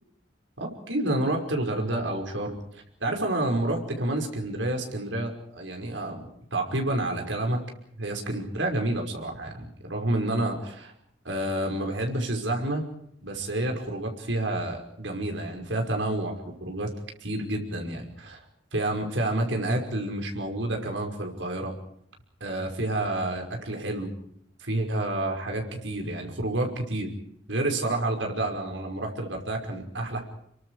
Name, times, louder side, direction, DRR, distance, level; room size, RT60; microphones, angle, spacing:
voice 1, 0.6-7.6 8.0-10.9 11.2-12.9 13.2-16.9 17.2-18.4 18.7-21.8 22.4-24.1 24.6-27.1 27.5-30.2, right 1 dB, 75° right, 3 dB, 5.6 m, -29 dB
29.5 x 23.5 x 5.0 m, 0.71 s
head